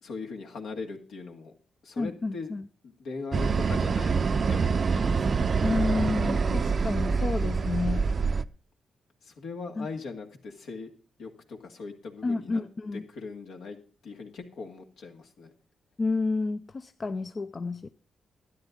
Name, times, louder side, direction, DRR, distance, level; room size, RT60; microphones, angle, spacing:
voice 1, 0.0-1.6 1.8-2.5 2.8-4.2 4.5-5.5 9.2-10.9 11.2-12.6 12.9-13.8 14.0-15.5, left 4 dB, 75° left, 2.2 m, -40 dB
voice 2, 2.0-2.6 5.6-8.1 9.8-9.9 12.2-13.1 16.0-17.9, left 3 dB, 45° left, 0.6 m, -30 dB
sound 1, 3.3-8.4, right 5 dB, 50° right, 0.6 m, -25 dB
12.5 x 9.9 x 5.3 m
supercardioid pair, 45°, 0 cm